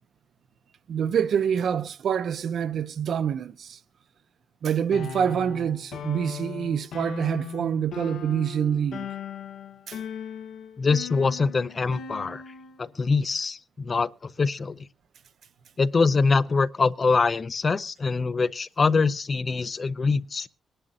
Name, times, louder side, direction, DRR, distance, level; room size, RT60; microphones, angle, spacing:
voice 1, 0.9-3.8 4.6-9.1 9.9-10.0, right 8 dB, 65° right, 0.8 m, -26 dB
sound 1, 4.9-12.8, left 7 dB, 90° left, 1.8 m, -38 dB
voice 2, 10.8-12.4 12.8-14.8 15.8-20.5, left 4 dB, 35° left, 0.6 m, -24 dB
23.0 x 11.0 x 2.6 m
cardioid pair, 115°, 0 cm